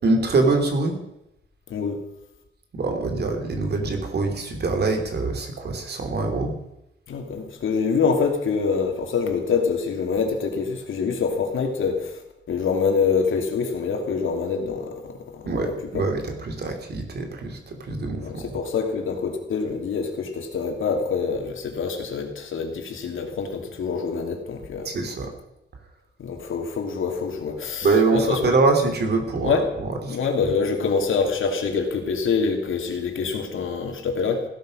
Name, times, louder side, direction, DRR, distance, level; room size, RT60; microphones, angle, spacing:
voice 1, 0.0-1.0 2.7-6.6 15.4-18.5 24.8-25.3 27.8-30.5, right 3 dB, 55° right, 5 dB, 3.1 m, -24 dB
voice 2, 7.1-12.2 12.5-16.0 18.2-24.9 26.2-27.9 28.1-28.4 29.3-29.6 30.1-34.4, left 5 dB, 85° left, 3 dB, 3.0 m, -25 dB
16.0 x 12.5 x 6.5 m, 0.86 s
wide cardioid pair, 155°, 20 cm